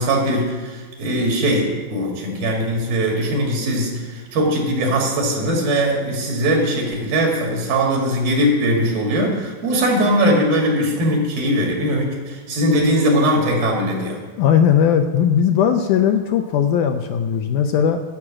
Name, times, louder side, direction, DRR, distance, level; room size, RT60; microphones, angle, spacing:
voice 1, 0.0-3.9 4.3-14.2, equal, 85° right, -1 dB, 4.1 m, -20 dB
voice 2, 14.4-18.0, left 8 dB, 80° left, 6 dB, 1.9 m, -18 dB
11.5 x 6.2 x 8.7 m, 1.3 s
omnidirectional pair, 4.1 m